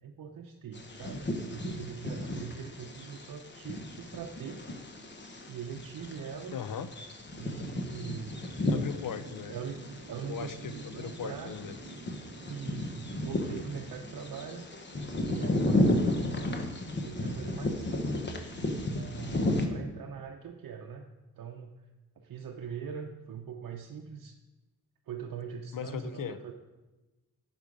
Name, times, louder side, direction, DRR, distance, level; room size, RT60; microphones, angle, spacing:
voice 1, 0.0-4.6 5.5-6.6 7.4-8.6 9.5-9.8 10.1-11.6 12.5-14.7 15.2-16.6 17.0-18.3 18.9-21.1 21.4-21.9 22.2-24.4 25.1-26.5, right 7 dB, 65° right, 2 dB, 0.7 m, -42 dB
Bird vocalization bird call bird song, 0.7-19.7, left 1 dB, 30° left, 1.0 m, -33 dB
voice 2, 6.5-6.9 8.7-9.5 10.3-11.8 25.7-26.4, left 8 dB, 65° left, 12 dB, 0.6 m, -38 dB
sound 1, 7.9-14.2, right 3 dB, 45° right, 0.9 m, -50 dB
9.1 x 5.5 x 4.9 m, 1.1 s
cardioid pair, 100°, 35 cm